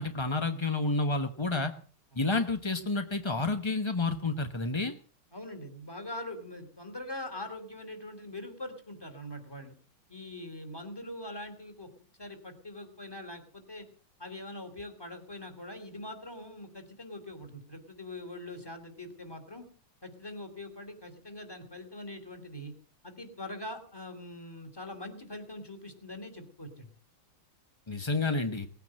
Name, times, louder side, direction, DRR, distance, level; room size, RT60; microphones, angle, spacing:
voice 1, 0.0-1.7 2.1-4.9 27.9-28.7, left 3 dB, 25° left, 7 dB, 0.6 m, -30 dB
voice 2, 5.3-9.7 10.1-11.9 12.2-13.9 14.2-19.6 20.0-22.7 23.0-26.9, left 1 dB, 10° left, 6 dB, 3.1 m, -43 dB
19.0 x 9.4 x 7.6 m, 0.43 s
omnidirectional pair, 2.3 m